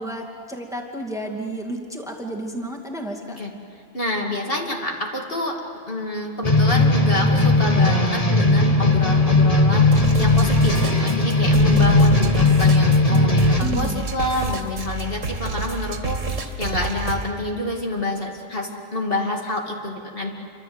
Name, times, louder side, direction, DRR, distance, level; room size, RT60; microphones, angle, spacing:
voice 1, 0.0-3.4 13.6-14.0, right 1 dB, ahead, 1 dB, 2.4 m, -31 dB
voice 2, 3.9-5.6 5.9-9.9 10.2-20.3, left 1 dB, 45° left, 0 dB, 2.7 m, -27 dB
sound 1, 6.4-13.6, left 2 dB, 25° left, 1.8 m, -17 dB
sound 2, 9.9-17.3, right 3 dB, 70° right, 2.1 m, -29 dB
28.5 x 25.5 x 8.0 m, 2.4 s
omnidirectional pair, 1.4 m